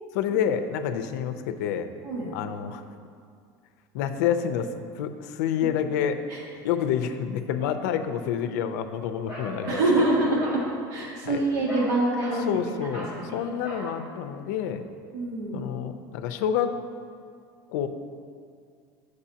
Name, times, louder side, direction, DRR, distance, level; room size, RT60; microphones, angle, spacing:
voice 1, 0.1-1.9 2.3-2.8 3.9-4.7 4.9-6.2 6.6-9.8 11.2-11.4 12.4-14.8 15.5-16.8 17.7-17.9, left 8 dB, 80° left, 8 dB, 0.5 m, -28 dB
Bark, 9.3-10.7 11.7-11.9 12.2-12.5 12.9-13.2 13.6-13.9, equal, 20° right, 1.5 m, -37 dB
voice 2, 9.7-10.6 10.9-12.5 12.8-13.3 15.1-15.6, right 2 dB, 80° right, -4 dB, 1.9 m, -25 dB
9.8 x 6.6 x 2.8 m, 2.2 s
cardioid pair, 170°, 9 cm